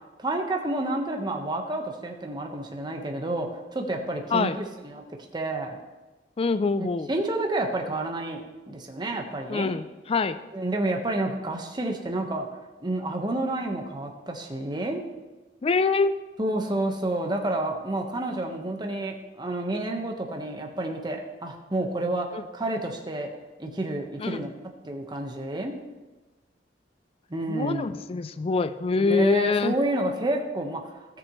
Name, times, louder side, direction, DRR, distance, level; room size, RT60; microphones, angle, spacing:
voice 1, 0.2-5.0 5.3-5.8 7.1-9.7 10.5-12.5 12.8-15.0 16.4-22.3 22.5-23.3 23.6-24.5 24.8-25.8 27.3-27.9 28.9-31.2, right 1 dB, 25° right, 2 dB, 1.2 m, -29 dB
voice 2, 6.4-7.1 9.5-10.4 15.6-16.1 22.3-22.4 24.2-24.4 27.5-29.8, left 4 dB, 35° left, 13 dB, 0.4 m, -25 dB
17.0 x 6.8 x 3.1 m, 1.2 s
head